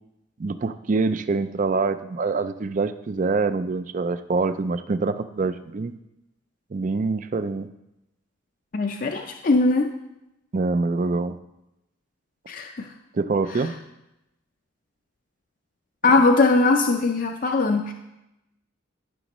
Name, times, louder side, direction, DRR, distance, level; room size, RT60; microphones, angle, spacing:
voice 1, 0.4-6.0 6.7-7.7 10.5-11.4 13.1-13.7, right 3 dB, 40° right, 12 dB, 0.4 m, -25 dB
voice 2, 8.7-9.9 12.5-12.9 16.0-17.9, left 3 dB, 45° left, 4 dB, 0.5 m, -20 dB
14.0 x 6.1 x 3.0 m, 0.91 s
head